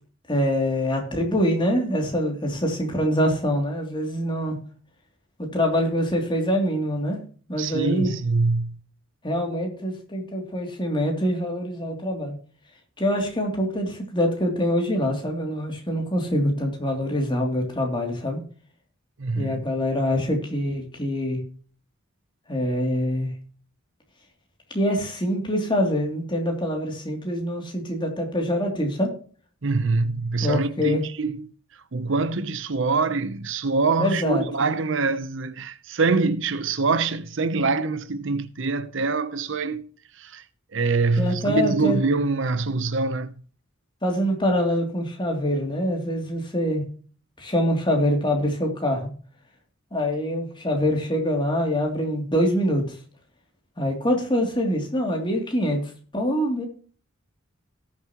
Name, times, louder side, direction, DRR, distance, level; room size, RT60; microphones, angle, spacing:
voice 1, 0.3-4.6 5.4-7.2 7.5-8.1 9.2-12.3 13.0-18.4 19.3-21.4 22.5-23.3 24.7-29.1 30.4-31.0 34.0-34.4 41.2-42.0 44.0-46.8 47.4-49.1 49.9-53.0 53.8-55.8 56.1-56.7, equal, 25° left, 2.8 m, -24 dB
voice 2, 7.6-8.8 19.2-19.6 29.6-31.5 31.9-39.9 40.2-40.4 40.7-43.3, right 4 dB, 65° right, 0.8 m, -24 dB
18.0 x 7.3 x 3.0 m
head